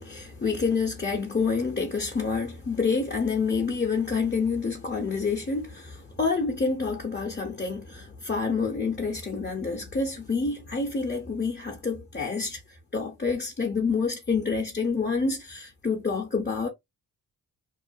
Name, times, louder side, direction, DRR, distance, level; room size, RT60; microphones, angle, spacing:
voice 1, 0.0-12.6 12.9-16.7, left 4 dB, 25° left, 0.8 m, -28 dB
2.5 x 2.1 x 2.6 m
cardioid pair, 70°, 41 cm